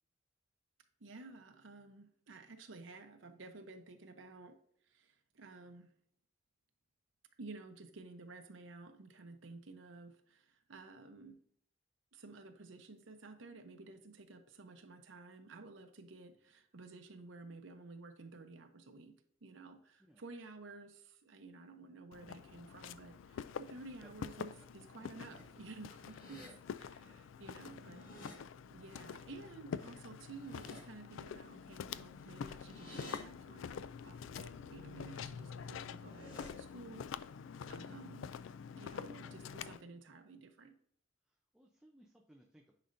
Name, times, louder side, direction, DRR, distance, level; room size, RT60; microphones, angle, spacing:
voice 1, 1.0-4.6 4.8-5.9 7.4-11.4 12.1-19.2 19.4-26.4 27.0-28.1 28.7-37.1 37.7-38.3 38.8-40.7, right 3 dB, 80° right, 6 dB, 0.8 m, -53 dB
Walk footsteps, 22.1-39.8, left 7 dB, 80° left, 0.3 m, -47 dB
sound 1, 24.9-25.4 25.8-26.5 27.6-28.3 30.1-30.8 32.0-33.2 35.7-36.5, left 1 dB, 45° left, 1.7 m, -54 dB
voice 2, 26.0-27.3 27.5-28.2 39.0-39.4 41.2-42.7, equal, 5° right, 1 dB, 0.6 m, -63 dB
9.8 x 4.2 x 2.6 m, 0.65 s
head